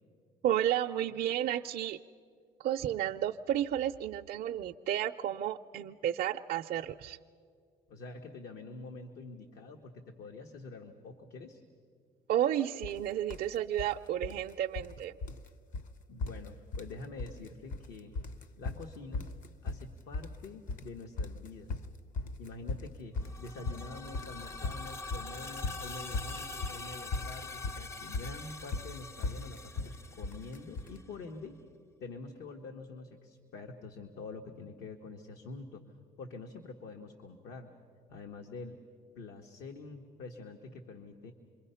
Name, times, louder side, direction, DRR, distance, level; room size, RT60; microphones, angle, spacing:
voice 1, 0.4-2.0 2.6-7.2 12.3-15.1, right 11 dB, 60° right, 4 dB, 0.5 m, -32 dB
voice 2, 7.9-11.6 16.1-18.1 18.6-19.3 19.6-21.8 22.4-31.6 32.0-35.8 36.2-37.7 38.1-38.8 39.1-41.3, left 3 dB, 80° left, 3 dB, 1.4 m, -46 dB
sound 1, 12.8-13.0 13.3-13.9 14.2-15.0 15.2-15.5 15.7-15.9 16.2-16.9 17.2-17.9 18.2-31.0, left 3 dB, 50° left, 0.8 m, -38 dB
sound 2, 23.2-31.0, left 3 dB, 15° left, 0.5 m, -44 dB
27.0 x 22.5 x 5.7 m, 2.2 s
cardioid pair, 110°, 17 cm